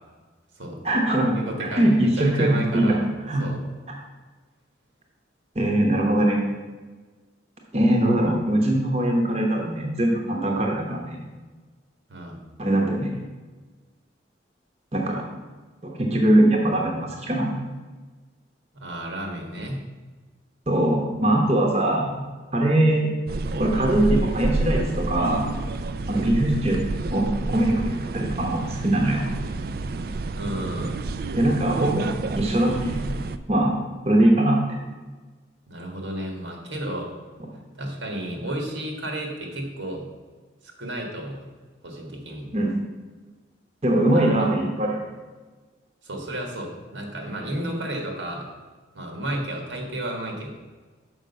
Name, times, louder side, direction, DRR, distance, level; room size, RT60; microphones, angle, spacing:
voice 1, 0.8-3.0 3.3-3.4 5.5-6.4 7.7-11.2 12.6-13.1 14.9-15.2 15.8-17.5 20.7-22.2 22.5-23.1 23.6-25.5 26.1-26.8 27.1-29.3 31.3-33.0 33.5-33.8 34.0-34.8 42.5-42.7 43.8-45.0, right 1 dB, 35° right, 0 dB, 0.9 m, -21 dB
voice 2, 1.3-3.0 3.4-3.6 12.1-12.4 18.7-19.8 30.3-31.0 35.7-37.1 37.8-40.1 40.6-41.5 41.8-42.5 44.1-44.5 46.0-48.5 48.9-50.5, right 1 dB, 85° right, 1 dB, 1.7 m, -32 dB
sound 1, 23.3-33.4, right 3 dB, 50° right, 0.3 m, -29 dB
6.3 x 5.2 x 6.7 m, 1.3 s
head